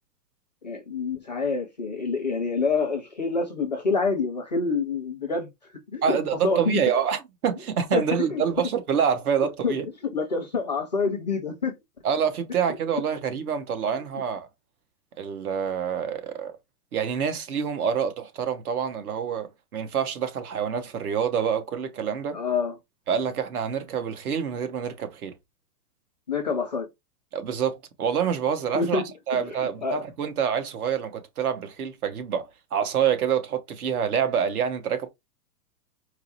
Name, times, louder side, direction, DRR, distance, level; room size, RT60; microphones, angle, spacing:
voice 1, 0.6-5.5 5.9-6.2 6.4-6.8 7.9-8.7 9.6-9.8 10.1-11.7 22.3-22.7 26.3-26.9 28.7-29.0 29.8-30.0, left 4 dB, 30° left, 0.4 m, -26 dB
voice 2, 6.0-9.9 12.0-14.5 15.2-16.6 16.9-22.4 23.1-25.3 27.3-35.1, right 7 dB, 60° right, 1.1 m, -27 dB
4.6 x 2.0 x 4.1 m
hypercardioid pair, 170°, 49 cm